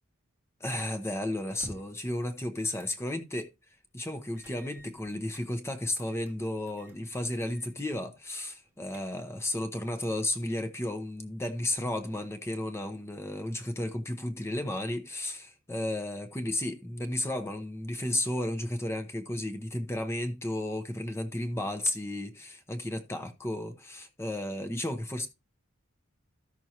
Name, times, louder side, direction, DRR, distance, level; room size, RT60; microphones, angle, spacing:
voice 1, 0.6-3.5 3.9-25.3, left 1 dB, 15° left, 0.8 m, -33 dB
sound 1, 1.5-2.1 2.8-3.0 3.4-3.5 4.4-5.5 6.0-6.3 6.7-7.0 7.4-7.7 8.0-8.1 8.6-9.4, equal, 10° right, 1.3 m, -50 dB
13.5 x 6.1 x 2.8 m
head